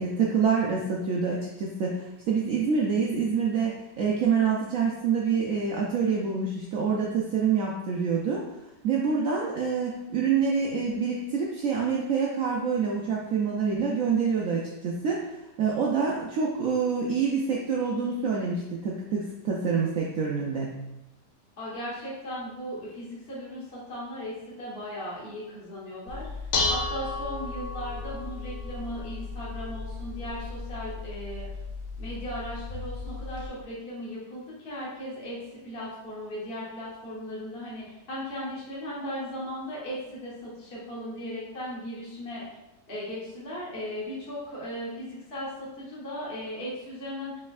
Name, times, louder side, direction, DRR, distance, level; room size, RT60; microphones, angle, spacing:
voice 1, 0.0-8.5 8.8-15.3 15.6-20.8, right 5 dB, 80° right, -2 dB, 0.7 m, -26 dB
voice 2, 21.6-31.5 32.0-35.4 35.6-42.4 42.9-47.4, equal, 40° left, -7 dB, 1.2 m, -37 dB
Dishes pots and pans, 26.1-33.5, left 3 dB, 65° left, 0.7 m, -34 dB
4.3 x 4.1 x 2.4 m, 0.95 s
omnidirectional pair, 1.9 m